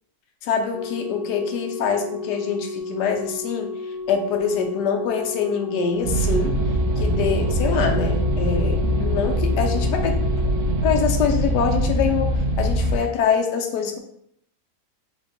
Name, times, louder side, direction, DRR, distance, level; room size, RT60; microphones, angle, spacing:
voice 1, 0.4-3.7 4.1-6.5 7.0-10.2 10.8-12.3 12.6-14.0, left 6 dB, 85° left, 4 dB, 1.2 m, -24 dB
Organ, 0.7-11.6 12.7-12.9, left 3 dB, 65° left, 1.1 m, -33 dB
sound 1, 6.0-13.0, right 1 dB, 70° right, 0.7 m, -22 dB
3.5 x 2.9 x 3.8 m, 0.71 s
omnidirectional pair, 1.8 m